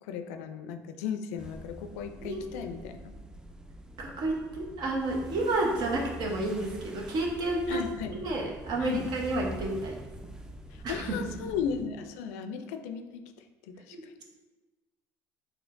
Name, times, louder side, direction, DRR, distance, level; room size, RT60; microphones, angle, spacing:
voice 1, 0.0-3.1 7.7-8.1 8.8-9.1 10.7-14.1, left 7 dB, 85° left, 8 dB, 0.3 m, -36 dB
sound 1, 1.4-11.8, equal, 10° right, 0.4 m, -45 dB
voice 2, 4.0-7.8 8.2-10.0 10.8-11.0 11.2-11.3 13.9-14.2, right 2 dB, 60° right, 0 dB, 0.9 m, -30 dB
4.9 x 3.2 x 2.5 m, 1.2 s
supercardioid pair, 85°, 8 cm